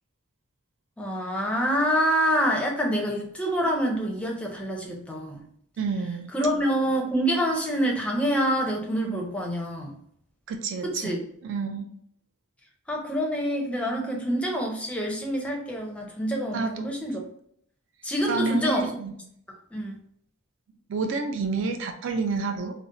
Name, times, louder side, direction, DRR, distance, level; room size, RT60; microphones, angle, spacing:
voice 1, 1.0-5.4 6.3-9.9 10.8-11.2 12.9-17.2 18.0-18.9 19.7-20.0, equal, 5° left, 0 dB, 0.5 m, -26 dB
voice 2, 5.8-6.3 10.5-11.1 11.4-11.9 16.5-16.9 18.3-19.1 20.9-22.7, right 4 dB, 65° right, 4 dB, 0.4 m, -29 dB
2.6 x 2.0 x 3.7 m, 0.67 s
head